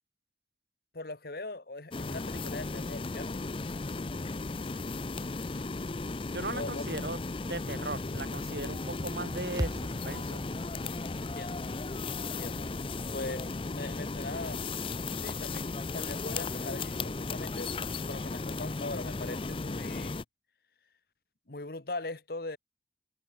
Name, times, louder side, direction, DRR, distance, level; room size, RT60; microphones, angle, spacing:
voice 1, 0.9-3.4 6.5-6.9 11.2-11.6 12.2-12.7 13.1-14.6 15.2-17.7 18.0-20.2 21.5-22.6, left 2 dB, 55° left, 1.3 m, -40 dB
sound 1, 1.9-20.2, left 3 dB, 30° left, 0.5 m, -35 dB
voice 2, 6.3-7.2 7.4-10.4, right 2 dB, 65° right, 3.3 m, -38 dB
sound 2, 9.6-13.9, equal, 20° right, 2.1 m, -41 dB
head